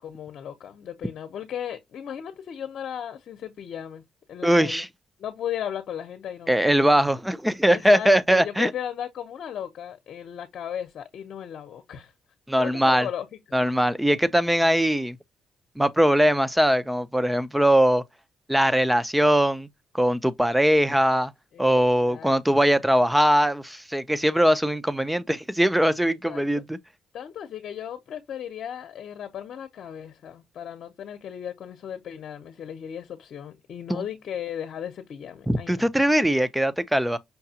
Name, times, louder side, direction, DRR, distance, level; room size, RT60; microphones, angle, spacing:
voice 1, 0.0-4.0 4.3-4.8 5.2-7.0 7.7-12.1 12.6-13.3 13.6-13.7 21.5-21.6 22.0-22.3 26.3-26.5 27.1-35.8, left 9 dB, 65° left, 0.8 m, -36 dB
voice 2, 4.4-4.9 6.5-8.7 12.5-13.1 13.5-15.2 15.8-18.0 18.5-19.7 19.9-21.3 21.6-26.8 33.9-34.0 35.5-37.2, equal, 5° right, 0.5 m, -21 dB
5.7 x 2.3 x 2.8 m
cardioid pair, 90°, 0 cm